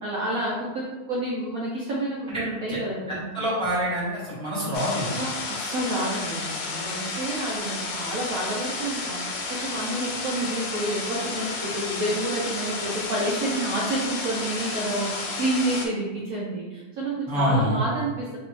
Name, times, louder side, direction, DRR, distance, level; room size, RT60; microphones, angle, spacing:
voice 1, 0.0-3.3 5.1-18.4, right 1 dB, 65° right, -5 dB, 0.9 m, -29 dB
voice 2, 3.1-5.2 17.3-17.8, equal, 5° left, -9 dB, 0.8 m, -26 dB
sound 1, 4.7-15.9, left 3 dB, 85° left, 1.3 m, -32 dB
3.1 x 3.0 x 3.2 m, 1.2 s
omnidirectional pair, 2.0 m